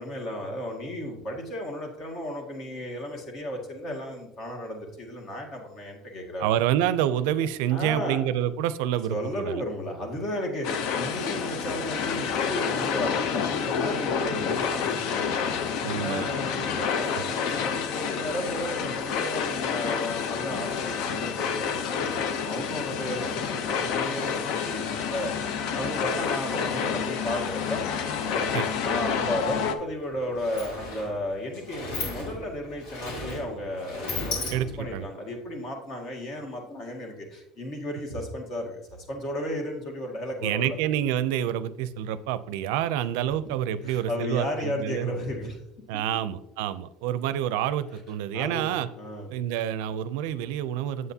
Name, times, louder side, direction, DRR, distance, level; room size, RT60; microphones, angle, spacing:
voice 1, 0.0-6.5 7.7-8.2 9.1-15.5 16.0-22.1 22.4-25.3 25.7-27.8 28.2-28.4 28.8-34.5 34.8-40.8 43.8-45.6 45.9-46.4 48.3-49.3, left 1 dB, 40° left, 1 dB, 1.9 m, -34 dB
voice 2, 6.4-9.6 15.8-16.3 17.1-17.2 28.5-28.7 34.5-35.1 40.4-45.1 45.9-48.9 49.3-51.1, right 11 dB, 85° right, 14 dB, 0.4 m, -28 dB
sound 1, 10.6-29.8, left 7 dB, 60° left, 0.7 m, -29 dB
Sliding door, 29.7-29.8 30.1-35.0, left 2 dB, 85° left, 2.5 m, -36 dB
8.1 x 7.4 x 2.8 m, 0.86 s
cardioid pair, 150°, 0 cm